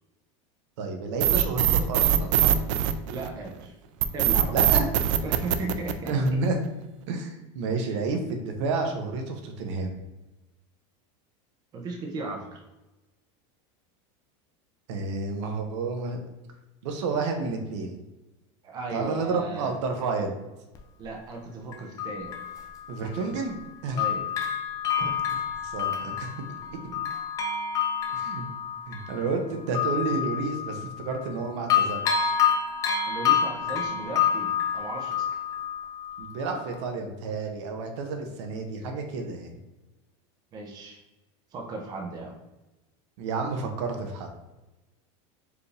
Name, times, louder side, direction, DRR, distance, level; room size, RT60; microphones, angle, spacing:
voice 1, 0.8-2.6 4.5-4.9 6.0-6.6 7.1-10.0 14.9-16.2 16.8-17.9 18.9-20.4 22.9-24.0 25.6-26.3 28.1-28.5 28.9-32.4 36.2-39.5 43.2-44.3, right 3 dB, 70° right, 4 dB, 0.8 m, -30 dB
sound 1, 1.2-3.5 4.0-6.5, right 11 dB, 90° right, 0.4 m, -22 dB
voice 2, 3.1-3.7 4.1-4.5 5.1-6.4 7.8-8.0 11.7-12.6 18.6-19.7 21.0-22.4 23.0-23.3 23.9-24.3 25.0-25.1 33.1-35.4 40.5-41.0 41.5-42.3, right 2 dB, 25° right, 0 dB, 0.6 m, -36 dB
Bell, 20.7-20.8 21.7-23.7 24.0-31.4 31.7-36.3 36.7-36.8, left 7 dB, 20° left, 0.4 m, -28 dB
4.8 x 2.6 x 3.3 m, 1.1 s
supercardioid pair, 165°, 16 cm